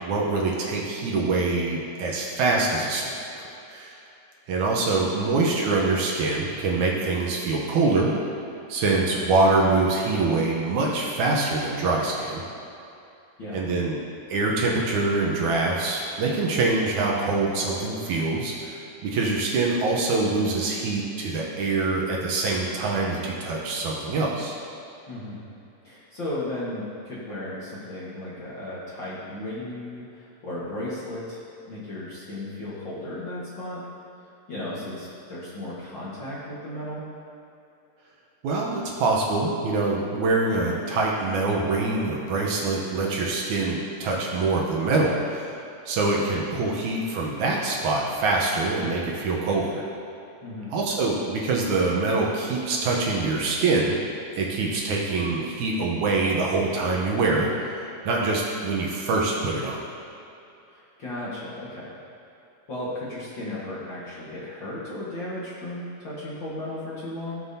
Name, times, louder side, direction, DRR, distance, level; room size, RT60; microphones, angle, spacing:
voice 1, 0.0-4.0 4.5-8.1 8.7-12.4 13.5-14.0 14.3-24.6 38.4-45.6 45.9-49.8 50.7-54.0 54.3-59.8, right 3 dB, 70° right, -2 dB, 2.2 m, -24 dB
voice 2, 25.1-25.4 25.8-33.8 34.5-37.0 50.4-50.7 60.7-61.9 62.7-67.4, left 1 dB, 45° left, -9 dB, 1.9 m, -35 dB
16.5 x 7.5 x 2.8 m, 2.8 s
omnidirectional pair, 3.9 m